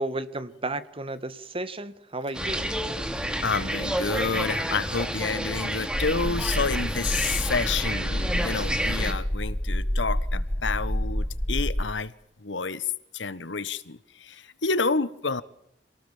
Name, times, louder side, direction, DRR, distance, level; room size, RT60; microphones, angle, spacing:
voice 1, 0.0-2.7, right 2 dB, 30° right, 1.7 m, -33 dB
sound 1, 2.3-9.1, equal, 5° right, 2.8 m, -30 dB
voice 2, 3.4-12.1 12.4-15.4, left 4 dB, 90° left, 1.4 m, -29 dB
sound 2, 5.9-11.8, equal, 10° left, 1.1 m, -29 dB
27.5 x 19.0 x 7.4 m
head